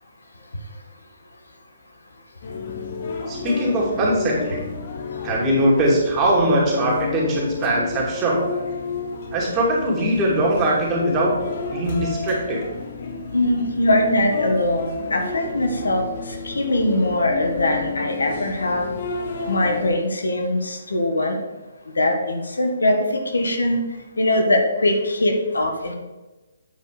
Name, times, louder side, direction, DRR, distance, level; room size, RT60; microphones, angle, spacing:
sound 1, 2.4-20.0, left 4 dB, 50° left, 1.2 m, -31 dB
voice 1, 3.3-4.7 5.2-8.5 9.3-11.4 11.7-12.6, right 1 dB, 25° right, -4 dB, 2.7 m, -21 dB
voice 2, 13.3-18.9 19.5-21.4 22.0-23.8 24.2-25.9, left 1 dB, 85° left, 4 dB, 1.6 m, -21 dB
8.8 x 4.9 x 4.9 m, 1.1 s
hypercardioid pair, 140°, 0 cm